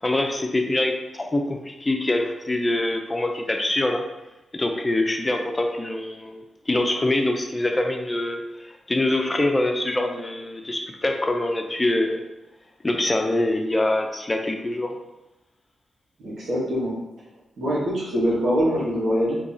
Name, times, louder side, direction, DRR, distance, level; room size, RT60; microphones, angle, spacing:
voice 1, 0.0-4.0 4.5-12.2 12.8-15.0, left 1 dB, 25° left, 3 dB, 0.5 m, -24 dB
voice 2, 16.2-16.9 17.6-19.4, equal, 80° right, -7 dB, 1.4 m, -23 dB
2.9 x 2.7 x 3.9 m, 1.0 s
cardioid pair, 60°, 0 cm